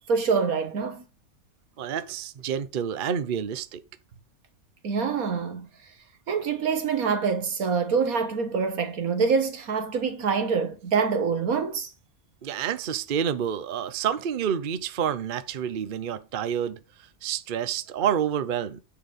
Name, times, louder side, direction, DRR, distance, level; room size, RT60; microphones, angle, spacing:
voice 1, 0.1-1.0 4.8-5.7 6.3-11.9, right 5 dB, 85° right, 1.9 m, -25 dB
voice 2, 1.8-3.8 12.4-16.8 17.2-18.8, right 8 dB, 45° right, 0.8 m, -28 dB
9.8 x 4.0 x 7.2 m
omnidirectional pair, 1.5 m